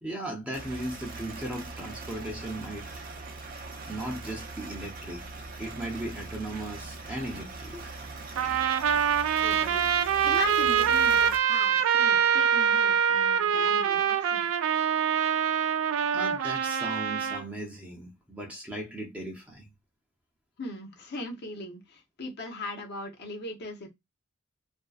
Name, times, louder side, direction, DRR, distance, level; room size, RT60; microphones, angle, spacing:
voice 1, 0.0-2.9 3.9-7.9 16.0-19.7, right 1 dB, 5° right, 0.6 m, -37 dB
sound 1, 0.5-11.4, right 3 dB, 45° right, 0.6 m, -41 dB
Trumpet, 8.4-17.4, right 8 dB, 85° right, 0.3 m, -24 dB
voice 2, 9.4-9.9 10.2-14.5 20.6-23.9, left 2 dB, 55° left, 0.7 m, -38 dB
2.5 x 2.1 x 2.3 m
head